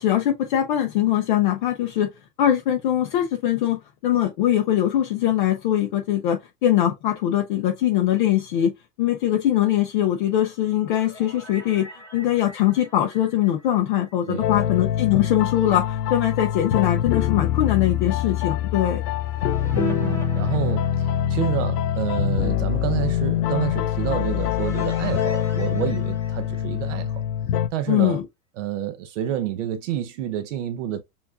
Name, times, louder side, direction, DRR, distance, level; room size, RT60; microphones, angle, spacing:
voice 1, 0.0-2.1 2.4-8.7 9.0-19.0 27.9-28.2, left 12 dB, 35° left, 0.5 m, -22 dB
sound 1, 10.5-14.8 15.0-15.1 18.7-21.8 23.8-27.2, left 1 dB, 5° left, 1.2 m, -45 dB
sound 2, 14.4-27.7, left 10 dB, 70° left, 0.7 m, -24 dB
voice 2, 19.7-27.2 27.7-28.2 28.6-31.0, right 11 dB, 50° right, 0.7 m, -29 dB
7.0 x 2.5 x 2.4 m
supercardioid pair, 160°, 48 cm